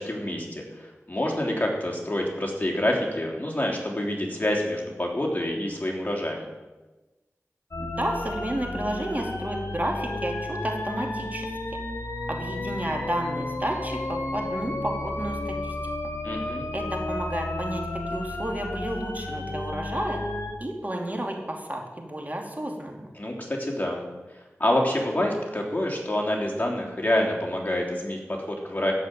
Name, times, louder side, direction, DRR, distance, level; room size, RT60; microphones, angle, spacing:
voice 1, 0.0-6.4 16.2-16.7 23.2-24.0 24.6-28.9, left 1 dB, 30° left, -1 dB, 3.4 m, -27 dB
sound 1, 7.7-20.5, left 2 dB, 65° left, 2.0 m, -32 dB
voice 2, 7.8-11.5 12.3-15.7 16.7-17.8 18.1-20.2 20.6-23.1, right 1 dB, 30° right, 1 dB, 2.7 m, -31 dB
14.0 x 5.5 x 9.2 m, 1.2 s
wide cardioid pair, 45°, 5 cm